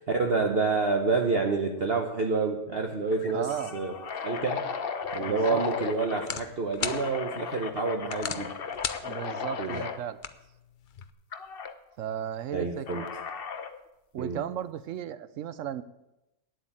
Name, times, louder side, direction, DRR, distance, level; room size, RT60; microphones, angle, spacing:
voice 1, 0.1-3.9 4.2-4.7 5.1-8.5 9.6-9.8 12.5-13.1 14.2-14.4, right 4 dB, 45° right, 3 dB, 1.0 m, -28 dB
sound 1, 1.8-2.1 2.4-2.5 3.1-6.3 6.8-10.0 11.3-11.7 12.9-13.8, left 6 dB, 45° left, 0.8 m, -35 dB
voice 2, 3.3-3.8 5.2-5.6 9.0-10.2 12.0-13.1 14.1-15.8, right 10 dB, 65° right, 15 dB, 0.8 m, -35 dB
sound 2, 5.0-11.1, left 7 dB, 60° left, 0.5 m, -40 dB
9.3 x 7.9 x 8.9 m, 0.92 s
omnidirectional pair, 1.7 m